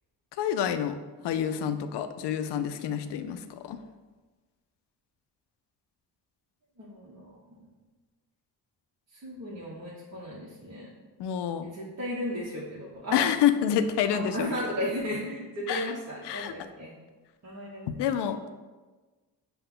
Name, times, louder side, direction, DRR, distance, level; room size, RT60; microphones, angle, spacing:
voice 1, 0.4-1.0 1.2-3.8 11.2-11.7 13.1-14.5 15.7-15.9 16.2-16.5 17.9-18.6, left 9 dB, 65° left, 11 dB, 0.5 m, -28 dB
voice 2, 6.8-7.6 9.1-10.9 11.6-13.2 14.1-16.9 17.4-18.2, equal, 35° right, -6 dB, 1.0 m, -35 dB
5.5 x 2.3 x 3.7 m, 1.3 s
supercardioid pair, 50°, 44 cm